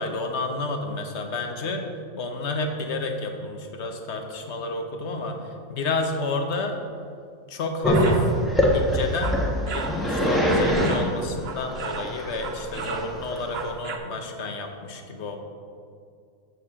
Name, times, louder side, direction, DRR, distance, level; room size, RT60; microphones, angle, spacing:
voice 1, 0.0-1.9 2.2-6.8 7.5-8.3 8.7-9.4 9.7-15.4, left 3 dB, 55° left, 4 dB, 1.3 m, -30 dB
Growling, 7.8-13.7, equal, ahead, 1.4 m, -23 dB
sound 1, 7.9-8.3 9.0-10.0 10.5-12.1 12.4-14.0, right 5 dB, 55° right, 1.0 m, -34 dB
14.5 x 6.4 x 3.7 m, 2.3 s
omnidirectional pair, 1.4 m